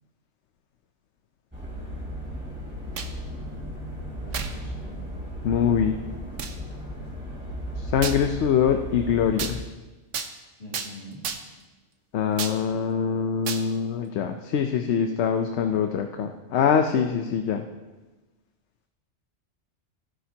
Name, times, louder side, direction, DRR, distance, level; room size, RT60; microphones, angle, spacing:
Aan de waterkant ter hoogte van Zuidledeplein, 1.5-9.6, equal, 10° right, 3.7 m, -36 dB
sound 1, 2.7-3.2 4.3-4.6 5.2-5.3 6.4-6.6 8.0-8.2 9.4-9.6 10.1-10.3 10.7-10.9 11.2-11.6 12.4-12.6 13.5-13.6, right 6 dB, 90° right, 1.2 m, -32 dB
voice 1, 4.0-5.0 10.6-11.2, equal, 55° left, -5 dB, 3.1 m, -43 dB
voice 2, 5.4-6.0 7.8-9.6 12.1-17.6, left 7 dB, 70° left, 6 dB, 0.9 m, -24 dB
16.5 x 10.0 x 2.8 m, 1.2 s
omnidirectional pair, 1.2 m